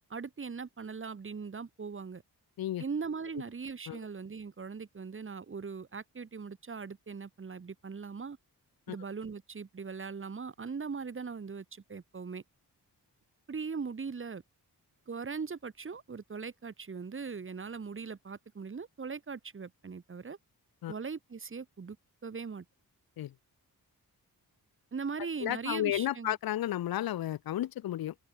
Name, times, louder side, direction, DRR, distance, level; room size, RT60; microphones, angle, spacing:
voice 1, 0.1-2.2 2.8-8.4 8.9-12.4 13.5-14.4 15.1-20.4 20.9-22.0 22.2-22.6 24.9-26.4, right 5 dB, 35° right, 1.1 m, -40 dB
voice 2, 25.4-28.1, left 13 dB, 70° left, 0.5 m, -32 dB
open air
wide cardioid pair, 165°, 37 cm